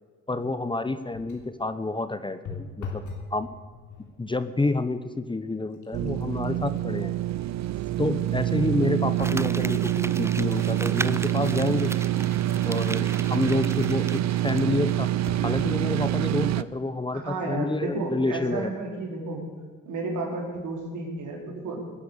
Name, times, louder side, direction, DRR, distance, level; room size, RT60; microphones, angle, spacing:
voice 1, 0.3-3.0 3.3-3.5 4.2-7.1 8.0-11.9 12.6-15.1 15.4-18.7, left 2 dB, 15° left, 12 dB, 0.9 m, -28 dB
sound 1, 1.1-1.6 2.4-3.3 3.7-4.2 4.9-5.1 5.5-9.0 9.5-9.6 10.3-13.0 15.3-15.8 16.5-16.6 16.8-16.9, left 4 dB, 75° left, 3.4 m, -43 dB
sound 2, 5.9-16.6, right 13 dB, 65° right, 0.6 m, -26 dB
Crumpling crinkling, 9.2-14.9 15.2-15.3, right 3 dB, 10° right, 0.4 m, -37 dB
voice 2, 17.1-19.5 19.8-21.8, right 3 dB, 80° right, 0 dB, 4.5 m, -32 dB
19.5 x 10.0 x 7.1 m, 1.5 s
cardioid pair, 90°, 30 cm